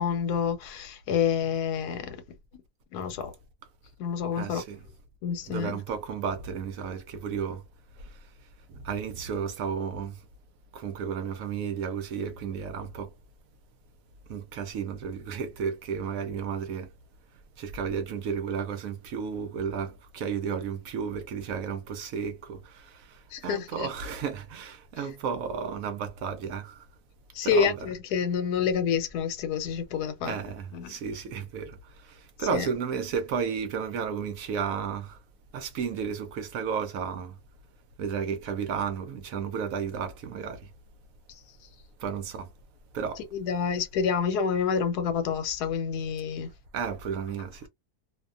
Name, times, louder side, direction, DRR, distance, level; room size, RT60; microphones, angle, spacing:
voice 1, 0.0-2.2 2.9-3.3 4.0-4.6 5.2-5.8 23.3-23.9 27.3-30.3 30.7-30.9 32.4-32.7 43.3-46.5, left 7 dB, 80° left, 1.2 m, -28 dB
voice 2, 4.3-4.8 5.5-7.6 8.0-10.3 10.7-13.1 14.3-16.9 17.6-26.9 27.4-27.8 30.2-35.2 35.5-37.4 38.0-40.7 42.0-42.5 42.9-43.2 46.7-47.7, right 6 dB, 70° right, 0.9 m, -33 dB
2.6 x 2.2 x 2.4 m
omnidirectional pair, 1.7 m